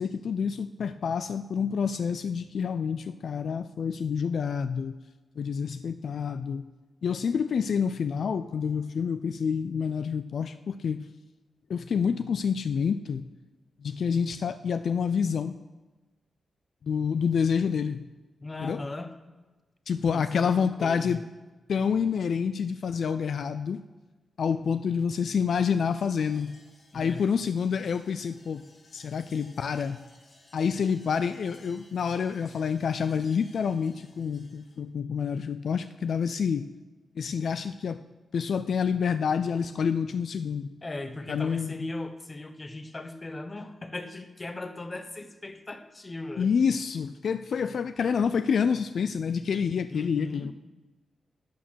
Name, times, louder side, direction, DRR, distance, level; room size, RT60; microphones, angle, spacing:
voice 1, 0.0-5.0 5.4-6.7 7.0-11.1 11.7-13.3 13.8-15.6 16.8-18.0 18.6-18.8 19.9-21.2 21.7-23.8 24.4-26.6 26.9-28.7 28.9-30.0 30.5-36.7 37.2-38.0 38.3-40.7 41.3-41.9 46.4-50.5, left 6 dB, 70° left, 12 dB, 0.4 m, -28 dB
voice 2, 18.4-19.1 20.1-21.2 26.9-27.2 40.8-46.5 49.9-50.5, left 2 dB, 25° left, 9 dB, 1.0 m, -38 dB
sound 1, 25.8-34.8, left 2 dB, 50° left, 1.9 m, -58 dB
12.0 x 8.2 x 6.3 m, 1.2 s
cardioid pair, 100°, 0 cm